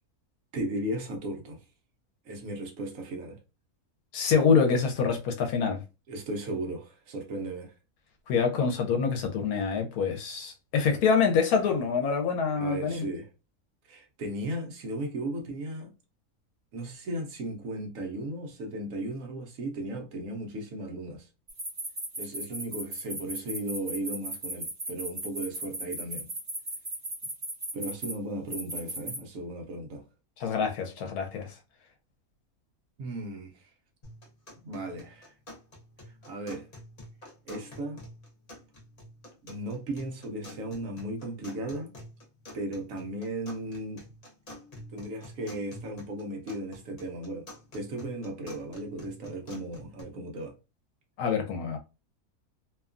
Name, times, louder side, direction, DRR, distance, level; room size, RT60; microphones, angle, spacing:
voice 1, 0.5-1.6 2.2-3.4 6.1-7.7 12.6-13.3 13.9-15.9 16.7-21.3 22.2-26.3 27.7-30.0 33.0-33.6 34.6-35.3 36.2-36.7 37.5-38.0 39.4-41.9 42.5-44.0 44.9-47.5 47.7-50.5, right 1 dB, 65° right, 1.0 m, -36 dB
voice 2, 4.1-5.8 8.3-13.0 30.4-31.5 51.2-51.8, left 5 dB, 75° left, 1.1 m, -26 dB
sound 1, 21.5-28.1 28.5-29.2, right 1 dB, 30° right, 0.9 m, -36 dB
sound 2, 34.0-50.0, left 1 dB, 40° left, 0.6 m, -48 dB
2.9 x 2.3 x 2.4 m
omnidirectional pair, 1.6 m